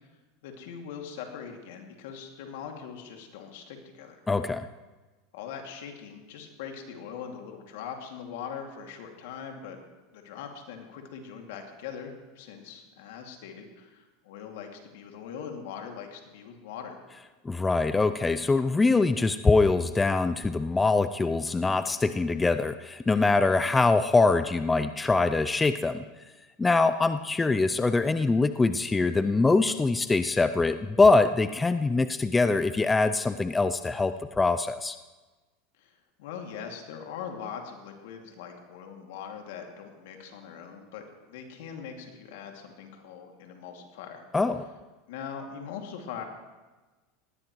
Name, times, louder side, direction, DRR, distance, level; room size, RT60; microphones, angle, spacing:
voice 1, 0.4-4.2 5.3-9.8 10.1-17.0 35.8-44.2 45.1-46.2, left 7 dB, 75° left, 3 dB, 2.4 m, -41 dB
voice 2, 4.3-4.7 17.4-26.0 26.6-35.0 44.3-44.6, left 3 dB, 15° left, 11 dB, 0.5 m, -23 dB
19.5 x 16.0 x 3.1 m, 1.2 s
supercardioid pair, 105°, 0 cm